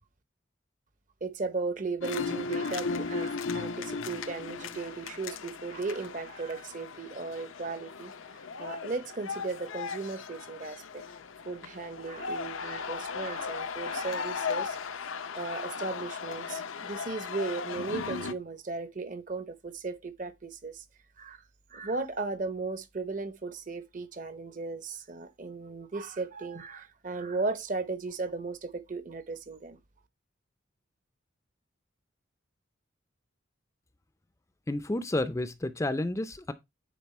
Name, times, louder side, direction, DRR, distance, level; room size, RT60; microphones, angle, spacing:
voice 1, 1.2-8.1 8.6-11.0 11.4-14.8 15.3-20.8 21.2-21.4 21.7-29.8, right 3 dB, 40° right, 0.8 m, -36 dB
sound 1, 2.0-18.3, left 5 dB, 90° left, 0.7 m, -36 dB
voice 2, 34.7-36.5, left 1 dB, 15° left, 0.4 m, -30 dB
9.4 x 3.9 x 4.2 m
head